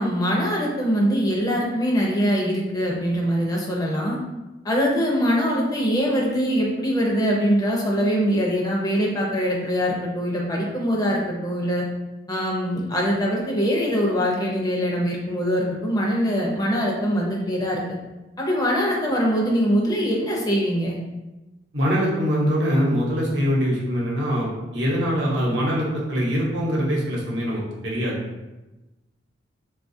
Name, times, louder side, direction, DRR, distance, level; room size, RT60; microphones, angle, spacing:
voice 1, 0.0-4.2 4.6-11.9 12.3-17.8 18.4-21.0, equal, 20° left, -3 dB, 0.5 m, -23 dB
voice 2, 21.7-28.1, equal, 80° right, -3 dB, 0.9 m, -23 dB
3.7 x 2.3 x 2.6 m, 1.1 s
head